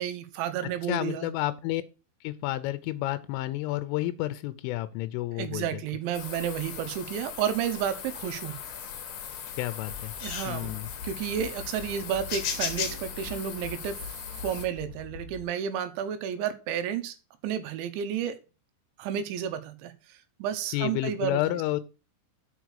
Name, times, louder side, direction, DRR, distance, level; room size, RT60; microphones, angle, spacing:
voice 1, 0.0-1.3 5.3-8.6 10.2-10.8 11.0-14.0 14.4-17.1 17.4-18.4 19.0-21.4, right 9 dB, 75° right, 3.1 m, -31 dB
voice 2, 0.6-1.8 2.2-5.8 9.6-10.1 10.5-10.9 20.7-21.8, left 15 dB, 85° left, 3.2 m, -30 dB
sound 1, 6.1-14.7, left 8 dB, 60° left, 2.3 m, -38 dB
sound 2, 9.9-15.4, left 4 dB, 30° left, 2.4 m, -43 dB
6.7 x 5.9 x 6.3 m
omnidirectional pair, 5.6 m